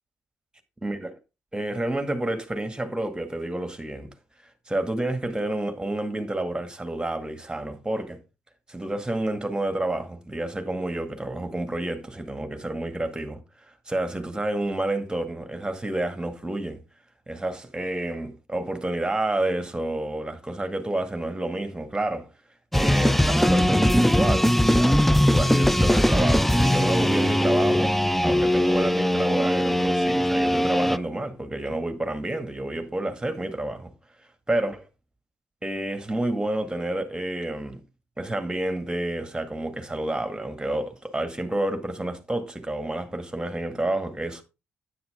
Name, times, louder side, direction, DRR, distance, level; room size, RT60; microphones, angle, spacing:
voice 1, 0.8-1.2 1.5-4.1 4.7-8.2 8.7-13.4 13.9-16.8 17.3-22.3 22.7-25.1 25.3-33.9 34.5-34.8 35.6-37.8 38.2-44.4, right 1 dB, 15° right, 2.0 m, -29 dB
sound 1, 22.7-31.0, equal, 5° left, 0.5 m, -20 dB
9.4 x 8.8 x 3.6 m
hypercardioid pair, 40°, 6 cm